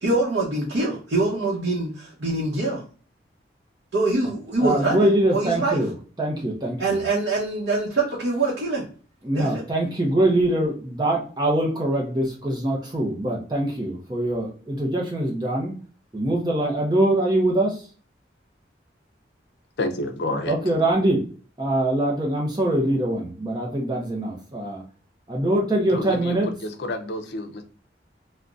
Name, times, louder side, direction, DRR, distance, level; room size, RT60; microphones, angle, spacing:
voice 1, 0.0-2.8 3.9-5.8 6.8-8.9 9.3-9.6, right 2 dB, 75° right, -5 dB, 0.8 m, -24 dB
voice 2, 4.6-7.0 9.2-15.8 16.1-17.8 20.5-21.2 21.6-24.8 25.3-26.5, right 1 dB, 25° right, -1 dB, 0.5 m, -23 dB
voice 3, 19.8-20.5 25.9-27.6, left 1 dB, 65° left, 5 dB, 0.5 m, -29 dB
3.7 x 2.1 x 2.4 m, 0.40 s
head